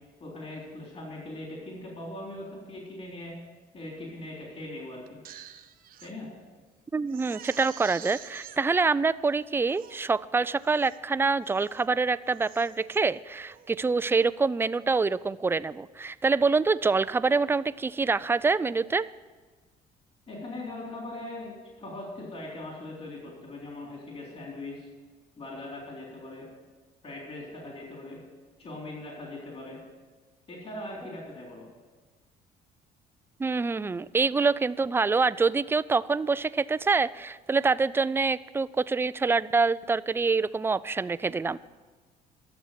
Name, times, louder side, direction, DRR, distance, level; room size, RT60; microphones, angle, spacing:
voice 1, 0.2-3.4 3.7-5.2 6.0-6.3 20.3-24.9 25.4-26.5 27.0-28.2 28.6-29.8 30.5-31.7, left 2 dB, 35° left, -2 dB, 3.7 m, -40 dB
Crying sobbing, 5.1-6.1 6.6-6.7 7.1-8.6 9.3-9.4 9.7-10.1 10.6-11.0 11.4-11.9 12.2-13.0 13.5-13.8, right 10 dB, 60° right, 0.8 m, -47 dB
voice 2, 6.9-19.1 33.4-41.6, right 4 dB, 15° right, 17 dB, 0.3 m, -26 dB
12.5 x 7.2 x 9.2 m, 1.3 s
cardioid pair, 110°, 17 cm